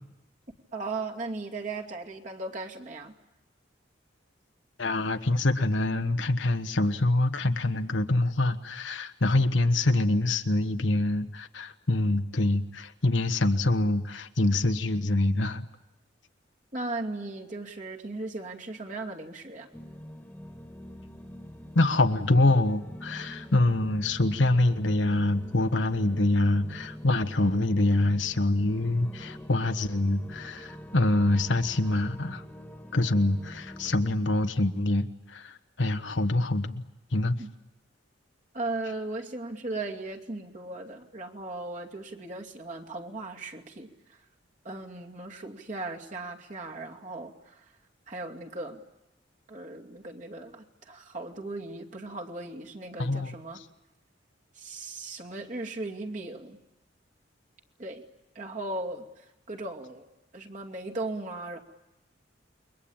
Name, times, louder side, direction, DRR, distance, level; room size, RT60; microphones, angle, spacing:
voice 1, 0.7-3.2 16.7-19.7 37.4-37.5 38.5-44.2 44.6-47.6 48.1-48.8 49.5-53.6 54.5-56.6 57.8-58.0 58.3-61.6, right 2 dB, 40° right, 1 dB, 2.6 m, -37 dB
voice 2, 4.8-15.6 21.7-32.4 32.9-36.8 37.1-37.4 53.0-53.3, left 2 dB, 75° left, 7 dB, 1.3 m, -25 dB
sound 1, 19.7-34.1, equal, 10° left, 1.9 m, -45 dB
29.0 x 23.0 x 8.9 m, 0.94 s
head